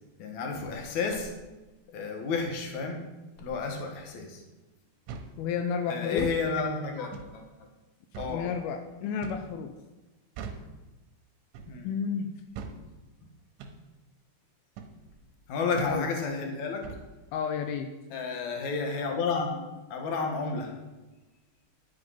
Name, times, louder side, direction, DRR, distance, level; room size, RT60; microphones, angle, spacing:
voice 1, 0.2-1.3 1.9-3.0 3.4-4.4 5.9-7.4 8.2-8.5 11.7-11.9 15.5-16.9 18.1-19.6 19.9-20.7, left 4 dB, 60° left, 3 dB, 2.1 m, -31 dB
sound 1, 5.1-5.4 6.1-6.4 7.1-7.4 8.1-8.4 9.2-9.5 10.4-10.7 11.5-11.8 12.6-12.8 13.6-13.8 14.8-15.0 15.8-16.0 16.8-17.1, right 5 dB, 85° right, 3.3 m, -40 dB
voice 2, 5.4-6.3 8.3-9.7 11.8-12.3 15.9-16.1 17.3-17.9, left 7 dB, 90° left, 6 dB, 2.1 m, -31 dB
10.5 x 8.1 x 5.7 m, 1.1 s
omnidirectional pair, 5.2 m